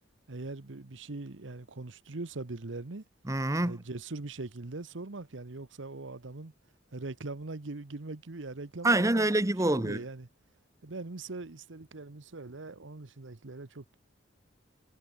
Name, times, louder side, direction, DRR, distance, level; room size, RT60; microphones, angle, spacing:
voice 1, 0.3-3.0 3.6-6.5 6.9-9.3 9.7-10.3 10.8-14.0, right 3 dB, 90° right, 1.1 m, -41 dB
voice 2, 3.3-3.8 8.8-10.0, right 2 dB, 15° right, 1.0 m, -26 dB
head